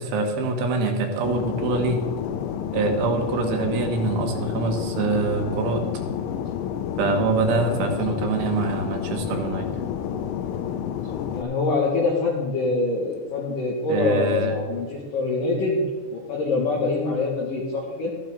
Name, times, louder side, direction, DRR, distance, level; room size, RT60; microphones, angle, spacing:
voice 1, 0.0-2.0 2.7-5.8 7.0-9.7 13.9-14.6, right 3 dB, 75° right, 3 dB, 3.7 m, -24 dB
Fixed-wing aircraft airplane, 1.2-11.4, left 9 dB, 85° left, 3.1 m, -29 dB
voice 2, 11.3-15.8 16.1-18.1, left 3 dB, 60° left, -2 dB, 2.5 m, -25 dB
13.0 x 12.5 x 3.7 m, 1.5 s
omnidirectional pair, 5.8 m